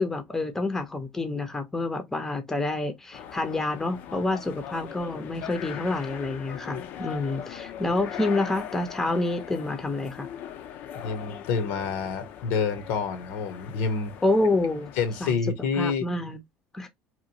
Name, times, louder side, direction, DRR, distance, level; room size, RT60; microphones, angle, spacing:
voice 1, 0.0-10.3 14.2-14.9 15.2-15.4 15.8-16.4 16.7-16.9, left 2 dB, 10° left, 0.6 m, -28 dB
sound 1, 3.1-15.3, left 9 dB, 55° left, 0.5 m, -40 dB
voice 2, 10.9-14.1 15.0-16.1, left 5 dB, 75° left, 0.8 m, -28 dB
2.9 x 2.2 x 2.6 m
cardioid pair, 135°, 4 cm